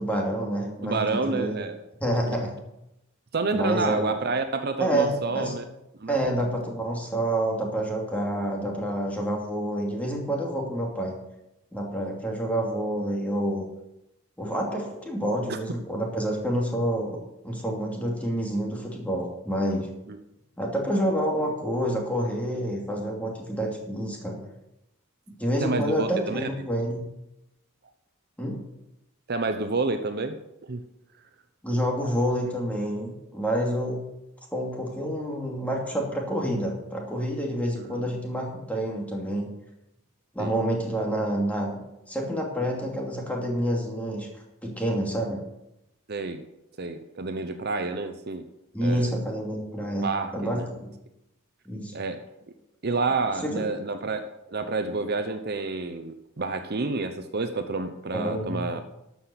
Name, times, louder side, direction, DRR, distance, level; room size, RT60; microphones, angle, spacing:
voice 1, 0.0-1.5 2.0-2.5 3.5-4.1 4.8-5.6 6.1-11.1 11.7-13.6 14.4-17.2 17.4-19.9 20.6-24.4 25.4-27.0 28.4-28.6 31.6-34.0 34.5-39.5 40.3-41.8 42.1-44.3 44.6-45.4 48.7-50.9 51.7-51.9 53.4-53.5 58.1-58.7, right 1 dB, 5° left, -1 dB, 2.6 m, -28 dB
voice 2, 0.8-1.8 2.3-2.4 3.3-5.6 6.0-6.2 20.1-20.2 25.6-26.5 29.3-30.8 37.8-38.1 40.4-40.5 46.1-46.4 46.8-48.5 48.8-49.2 50.0-50.7 51.9-52.3 52.8-58.8, right 3 dB, 50° right, 8 dB, 0.8 m, -29 dB
12.5 x 5.9 x 7.9 m, 0.88 s
head